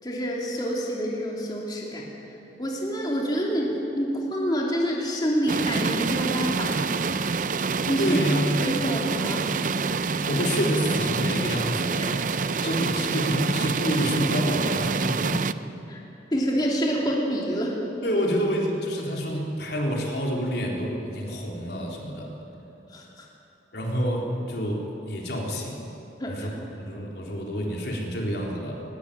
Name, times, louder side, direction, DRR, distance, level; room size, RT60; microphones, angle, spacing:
voice 1, 0.0-7.0 7.8-8.2 8.6-9.7 11.9-12.0 15.9-16.0 16.3-17.8 22.9-23.3 26.2-26.5, equal, 25° left, -3 dB, 2.9 m, -27 dB
sound 1, 5.5-15.5, right 4 dB, 45° right, 0.5 m, -27 dB
voice 2, 8.0-8.7 10.3-15.4 18.0-22.3 23.7-25.9 26.3-26.5 26.8-28.8, equal, 70° left, -1 dB, 3.7 m, -28 dB
21.0 x 20.5 x 8.7 m, 3.0 s
head